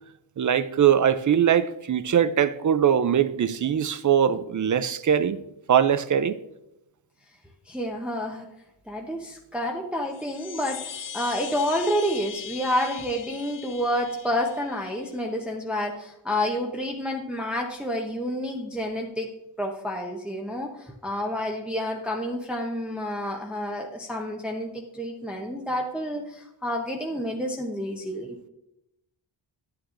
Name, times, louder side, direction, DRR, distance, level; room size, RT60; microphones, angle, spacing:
voice 1, 0.4-5.4 5.7-6.4, right 9 dB, 40° right, 0.4 m, -21 dB
voice 2, 7.7-8.5 8.9-19.3 19.6-28.4, equal, ahead, 0.7 m, -29 dB
sound 1, 10.0-15.1, left 8 dB, 45° left, 0.5 m, -40 dB
11.0 x 8.7 x 2.5 m
wide cardioid pair, 135°, 48 cm